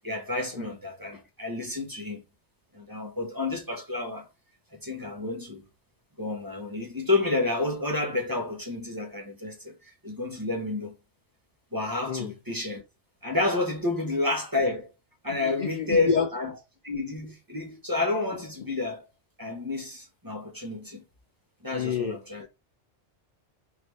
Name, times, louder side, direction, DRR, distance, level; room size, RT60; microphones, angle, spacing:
voice 1, 0.0-2.2 2.7-4.3 4.8-5.6 6.2-9.7 10.0-10.9 11.7-12.8 13.2-14.9 15.2-16.5 16.8-19.0 19.4-21.0 21.6-22.5, left 2 dB, 20° right, 0.9 m, -30 dB
voice 2, 15.3-16.3 21.7-22.2, left 6 dB, 55° left, 0.5 m, -28 dB
3.8 x 3.3 x 3.2 m
omnidirectional pair, 1.2 m